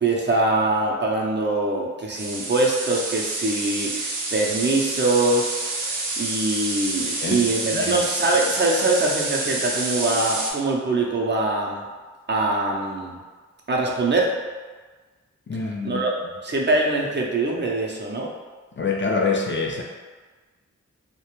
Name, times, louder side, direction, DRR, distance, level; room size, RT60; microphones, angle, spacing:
voice 1, 0.0-11.8 12.3-13.2 13.7-14.3 15.8-16.1 16.4-18.3, right 2 dB, 35° right, -2 dB, 0.5 m, -23 dB
sound 1, 2.2-10.5, right 2 dB, 85° right, 0.5 m, -28 dB
voice 2, 7.0-8.0 15.5-16.0 18.8-19.8, left 4 dB, 40° left, 0 dB, 0.4 m, -26 dB
2.3 x 2.1 x 3.0 m, 1.4 s
cardioid pair, 45°, 30 cm